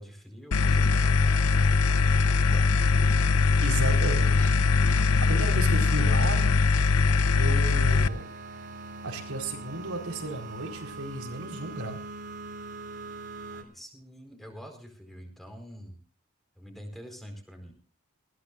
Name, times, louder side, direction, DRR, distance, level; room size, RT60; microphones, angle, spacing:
voice 1, 0.0-2.7 13.5-16.0 16.6-17.7, equal, ahead, 3 dB, 4.5 m, -46 dB
sound 1, 0.5-8.1, left 4 dB, 80° left, 0.7 m, -22 dB
voice 2, 3.6-6.5 7.4-8.2 9.0-12.0, right 2 dB, 70° right, 2 dB, 4.5 m, -34 dB
sound 2, 7.6-13.6, right 3 dB, 50° right, 3.2 m, -41 dB
21.0 x 17.0 x 2.5 m, 0.41 s
head